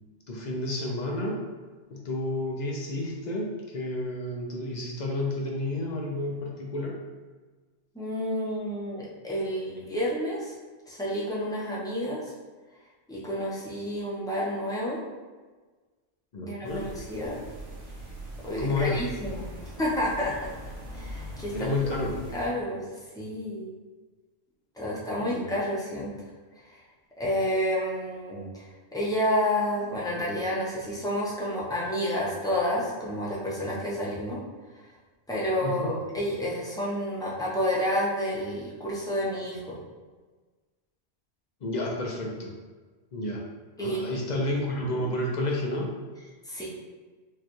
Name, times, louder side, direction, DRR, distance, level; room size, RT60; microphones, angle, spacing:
voice 1, 0.3-1.4 1.9-7.0 16.3-16.9 18.5-19.0 21.5-22.2 25.2-25.6 35.6-36.0 41.6-42.6 43.1-43.4 43.8-46.0, left 2 dB, 50° left, -1 dB, 0.6 m, -30 dB
voice 2, 7.9-10.5 10.9-12.2 13.1-15.0 16.4-17.4 18.4-19.5 19.8-20.3 20.9-22.9 23.2-23.7 24.8-26.1 26.7-26.8 27.2-34.4 35.3-39.8 43.8-44.2 46.5-46.7, equal, 5° left, -6 dB, 0.6 m, -30 dB
sound 1, 16.6-22.5, right 1 dB, 85° right, 1.3 m, -41 dB
4.7 x 2.3 x 3.0 m, 1.4 s
omnidirectional pair, 1.2 m